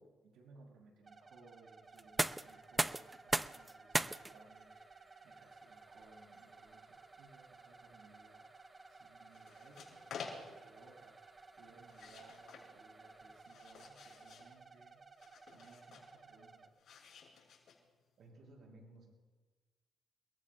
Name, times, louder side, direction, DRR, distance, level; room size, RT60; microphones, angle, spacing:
voice 1, 0.0-11.2 11.6-15.0 15.5-16.8, right 3 dB, 80° right, -2 dB, 5.4 m, -63 dB
sound 1, 1.0-16.7, right 3 dB, 30° right, 1.0 m, -58 dB
sound 2, 1.9-13.7, right 2 dB, 15° right, 0.5 m, -43 dB
sound 3, 9.3-10.7 11.8-12.7 13.2-14.5 15.2-16.1 16.8-18.0, left 5 dB, 65° left, 6.4 m, -51 dB
voice 2, 18.2-19.1, right 1 dB, 60° right, -1 dB, 6.3 m, -57 dB
29.5 x 21.5 x 2.2 m, 1.3 s
cardioid pair, 90°, 0 cm